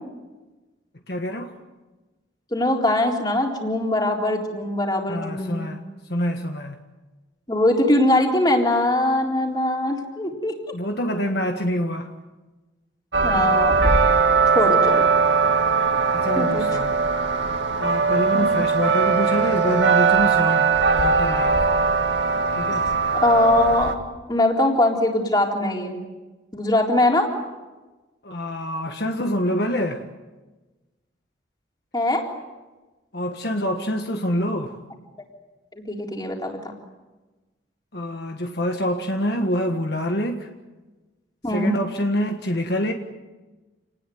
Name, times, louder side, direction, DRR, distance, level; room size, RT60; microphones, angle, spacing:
voice 1, 1.1-1.6 5.1-5.8 6.1-6.8 10.7-12.1 16.1-17.0 17.8-21.7 22.5-22.8 28.2-30.0 33.1-34.8 37.9-40.5 41.5-42.9, equal, 55° left, 1.5 m, -26 dB
voice 2, 2.5-5.6 7.5-10.5 13.2-13.8 14.5-15.0 16.4-16.6 18.3-18.5 22.7-22.8 23.2-23.9 24.3-26.0 26.5-27.3 31.9-32.2 35.7-36.7 41.4-41.7, left 1 dB, 20° left, 3.9 m, -21 dB
sound 1, 13.1-23.9, right 4 dB, 70° right, 2.1 m, -20 dB
28.5 x 19.5 x 9.3 m
head